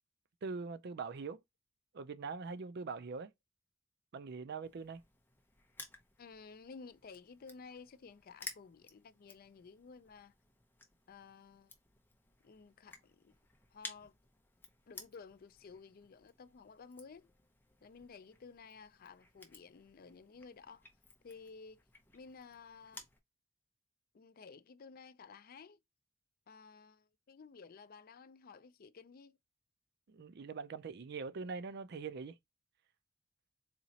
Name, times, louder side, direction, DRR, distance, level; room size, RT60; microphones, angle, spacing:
voice 1, 0.4-1.4 1.9-3.3 4.1-5.0 30.1-32.4, right 4 dB, 55° right, 0.5 m, -42 dB
Crushing, 4.6-23.2, left 3 dB, 10° left, 0.7 m, -56 dB
voice 2, 6.2-10.3 11.1-11.7 12.4-13.3 13.7-14.1 14.9-17.3 17.8-20.8 21.2-21.8 22.1-23.0 24.1-25.8 26.5-29.4, left 5 dB, 45° left, 0.4 m, -54 dB
4.1 x 2.9 x 2.8 m
head